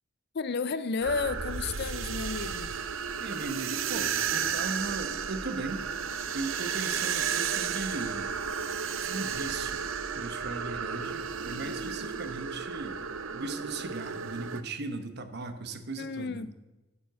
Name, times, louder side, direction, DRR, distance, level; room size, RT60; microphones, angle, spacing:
voice 1, 0.3-2.7 16.0-16.5, left 4 dB, 55° left, 0.5 m, -32 dB
sound 1, 1.0-14.6, right 7 dB, 80° right, 0.7 m, -33 dB
voice 2, 3.2-5.8 6.3-8.3 9.0-9.9 10.1-13.0 13.3-16.5, right 3 dB, 55° right, 1.0 m, -37 dB
9.7 x 7.6 x 8.0 m
head